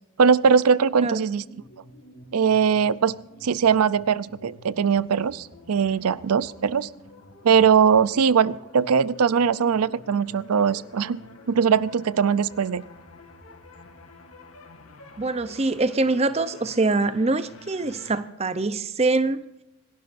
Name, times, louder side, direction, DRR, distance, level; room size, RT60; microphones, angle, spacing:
voice 1, 0.2-1.4 2.3-3.1 3.4-6.9 7.4-11.2 11.5-12.8, right 6 dB, 85° right, 18 dB, 0.5 m, -20 dB
sound 1, 1.3-18.2, left 1 dB, 80° left, 2.4 m, -48 dB
voice 2, 15.2-19.4, right 3 dB, 30° right, 13 dB, 0.6 m, -24 dB
26.5 x 12.0 x 2.6 m, 0.91 s
head